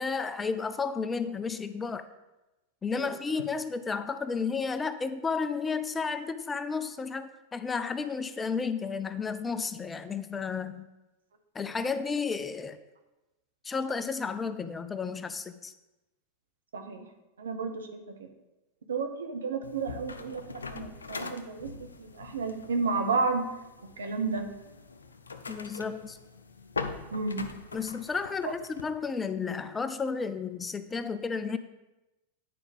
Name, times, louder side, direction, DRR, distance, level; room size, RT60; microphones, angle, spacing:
voice 1, 0.0-2.1 2.8-10.9 11.5-12.8 13.6-15.7 25.5-26.2 27.7-31.6, left 5 dB, 20° left, 11 dB, 0.5 m, -32 dB
voice 2, 16.7-17.0 17.4-18.3 18.9-20.4 20.7-21.7 22.0-23.5 24.0-24.4 27.1-27.5 28.4-28.5, right 4 dB, 80° right, 6 dB, 1.0 m, -31 dB
sound 1, 19.6-28.8, left 4 dB, 90° left, 0.6 m, -42 dB
9.4 x 4.9 x 5.3 m, 1.0 s
hypercardioid pair, 95°, 0 cm